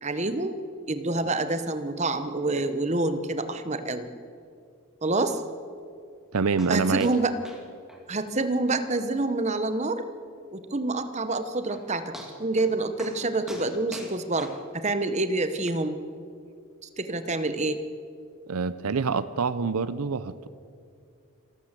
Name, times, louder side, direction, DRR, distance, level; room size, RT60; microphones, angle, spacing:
voice 1, 0.0-0.6 0.9-4.1 5.0-5.4 6.7-7.3 8.1-10.0 10.5-12.1 12.4-16.0 16.8-17.8, right 2 dB, 30° right, 10 dB, 1.0 m, -27 dB
voice 2, 6.3-7.1 18.5-20.5, right 5 dB, 85° right, 15 dB, 0.6 m, -26 dB
sound 1, 6.6-6.7 7.0-7.2 7.4-7.6 7.9-8.0 8.4-8.5 8.9-9.0 9.5-9.6 11.3-11.4 11.7-11.8 12.1-12.7 13.0-13.2 13.5-15.0 15.7-15.8, equal, ahead, 2.2 m, -43 dB
27.0 x 13.0 x 7.5 m, 2.3 s
head